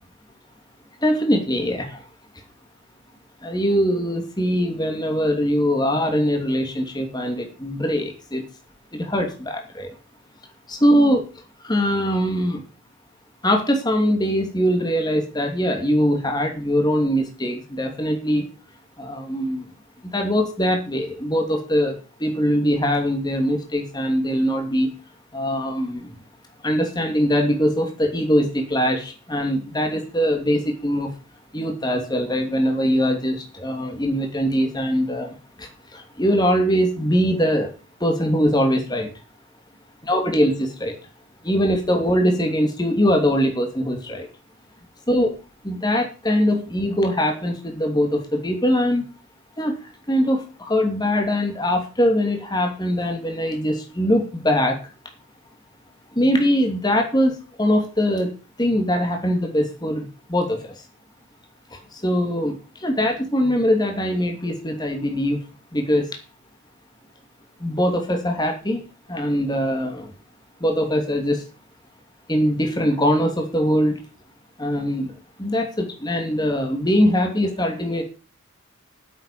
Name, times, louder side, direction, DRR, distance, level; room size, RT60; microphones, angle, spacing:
voice 1, 1.0-2.0 3.4-8.4 8.9-9.9 10.7-11.2 11.6-12.6 13.4-18.4 19.0-19.6 20.1-24.9 25.3-26.1 26.6-31.1 31.5-35.3 35.6-37.7 38.0-39.1 40.0-40.9 41.4-44.3 45.1-45.3 45.6-49.0 49.6-49.8 50.1-54.8 56.2-57.3 57.6-58.3 58.6-60.7 62.0-65.4 65.7-66.1 67.6-68.8 69.1-70.1 70.6-71.4 72.3-74.0 74.6-75.1 75.4-78.0, equal, 20° left, 3 dB, 2.7 m, -22 dB
9.5 x 8.0 x 7.5 m, 0.35 s
head